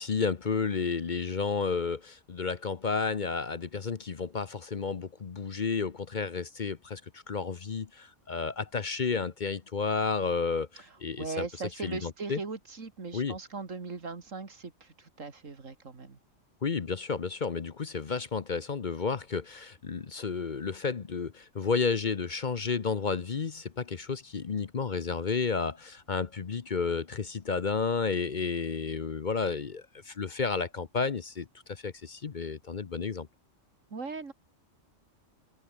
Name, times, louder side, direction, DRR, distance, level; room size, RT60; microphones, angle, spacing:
voice 1, 0.0-11.5 11.8-12.4 13.1-13.4 16.6-33.3, left 5 dB, 40° left, 0.9 m, -32 dB
voice 2, 11.2-16.2 33.9-34.3, right 4 dB, 85° right, 2.9 m, -39 dB
omnidirectional pair, 1.3 m